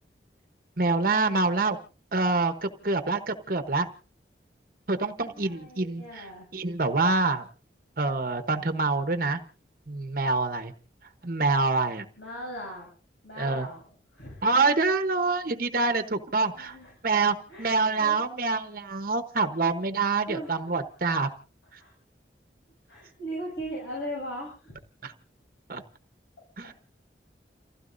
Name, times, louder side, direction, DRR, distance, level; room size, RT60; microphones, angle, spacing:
voice 1, 0.8-1.8 2.1-3.9 4.9-6.2 6.5-7.4 8.0-9.4 9.9-10.7 11.2-12.0 13.4-13.7 14.4-16.8 17.0-21.3 25.0-25.1 25.7-25.8 26.6-26.7, right 3 dB, 50° right, 7 dB, 1.1 m, -26 dB
voice 2, 5.2-6.5 12.2-12.9 13.2-14.5 16.5-16.9 17.5-18.2 20.3-20.8 21.8-21.9 22.9-24.8 26.6-26.7, equal, 85° left, -3 dB, 7.6 m, -39 dB
29.5 x 15.5 x 2.6 m, 0.36 s
head